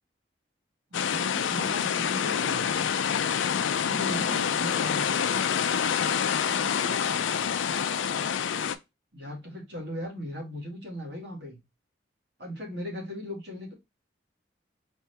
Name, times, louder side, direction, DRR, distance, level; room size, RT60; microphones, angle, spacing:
sound 1, 0.9-8.7, left 7 dB, 90° left, 0.4 m, -27 dB
voice 1, 0.9-2.7 3.7-5.2 9.1-11.6 12.4-13.7, left 1 dB, 60° right, 2.0 m, -38 dB
voice 2, 4.0-5.0 6.3-8.5, right 1 dB, 25° right, 0.6 m, -48 dB
4.4 x 3.3 x 2.8 m
head